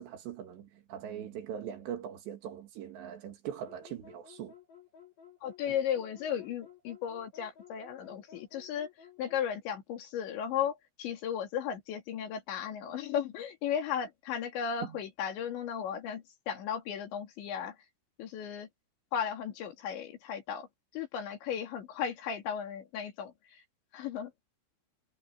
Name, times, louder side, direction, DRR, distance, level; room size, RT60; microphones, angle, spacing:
voice 1, 0.0-4.5 5.7-5.8 14.8-15.0, right 9 dB, 75° right, 4.4 m, -41 dB
sound 1, 3.6-9.5, left 8 dB, 50° left, 8.1 m, -55 dB
voice 2, 5.4-8.9 9.2-17.8 18.2-18.7 19.1-20.7 20.9-23.6 23.9-24.3, left 8 dB, 85° left, 5.0 m, -35 dB
omnidirectional pair, 5.1 m